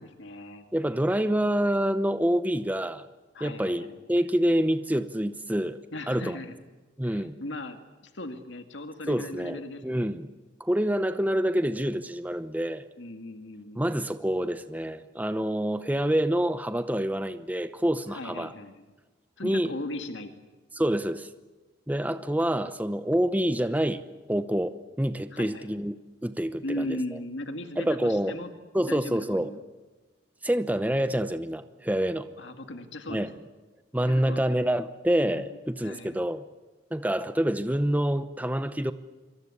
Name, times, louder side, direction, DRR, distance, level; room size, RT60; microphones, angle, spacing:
voice 1, 0.0-0.7 3.3-4.0 5.9-6.6 7.0-10.1 13.0-13.9 18.1-18.9 19.4-20.3 25.3-25.9 26.6-28.5 28.8-29.6 32.4-33.3 34.1-34.4 35.3-36.2, left 1 dB, 75° left, 2.0 m, -38 dB
voice 2, 0.7-3.0 3.4-5.8 6.1-6.4 7.0-7.3 9.1-10.3 10.6-12.8 13.8-18.5 19.4-19.7 20.7-21.3 21.9-24.0 24.3-26.0 26.2-27.0 27.8-28.4 28.7-29.5 30.4-32.3 33.1-33.3 33.9-36.4 36.9-38.9, right 1 dB, 10° right, 0.8 m, -27 dB
26.0 x 24.5 x 8.5 m
head